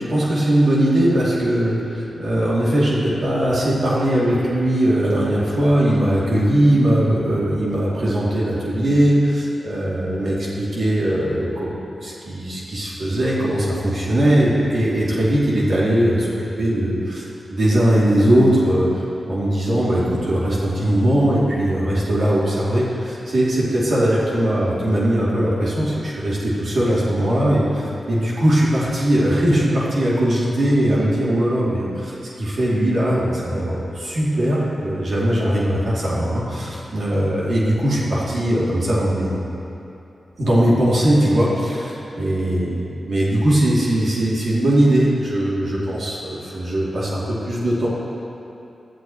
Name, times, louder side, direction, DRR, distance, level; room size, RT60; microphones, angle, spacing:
voice 1, 0.1-16.3 16.6-39.5 40.4-47.9, right 1 dB, 70° right, -7 dB, 2.6 m, -20 dB
16.5 x 12.0 x 3.1 m, 2.8 s
supercardioid pair, 40°, 0 cm